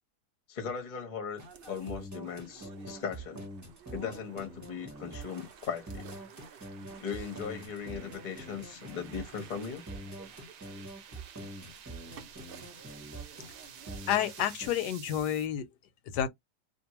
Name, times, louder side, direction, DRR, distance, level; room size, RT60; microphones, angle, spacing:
voice 1, 0.5-3.5 3.9-6.1 7.0-9.8, left 6 dB, 40° left, 0.8 m, -38 dB
sound 1, 1.3-14.2, right 6 dB, 65° right, 0.5 m, -54 dB
sound 2, 1.4-14.7, right 1 dB, 15° right, 0.8 m, -44 dB
sound 3, 1.5-15.5, right 8 dB, 85° right, 1.2 m, -53 dB
voice 2, 14.1-15.7 16.1-16.3, left 10 dB, 85° left, 1.2 m, -29 dB
2.6 x 2.5 x 2.9 m
omnidirectional pair, 1.8 m